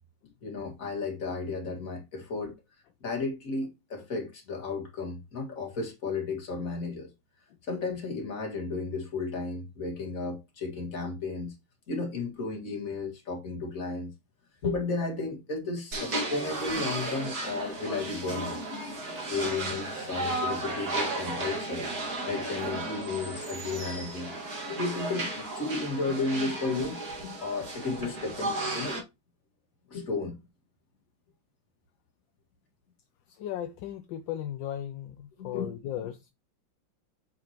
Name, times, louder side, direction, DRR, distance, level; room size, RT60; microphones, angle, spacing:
voice 1, 0.4-2.5 3.0-7.1 7.6-11.6 11.9-14.1 14.6-18.6 19.3-21.9 22.3-24.3 24.7-29.0 29.9-30.3 35.4-35.8, left 3 dB, 40° left, 2.2 m, -33 dB
sound 1, 15.9-29.0, right 2 dB, 45° right, 2.3 m, -34 dB
voice 2, 33.3-36.3, left 11 dB, 70° left, 1.2 m, -37 dB
7.6 x 4.9 x 2.9 m
omnidirectional pair, 2.4 m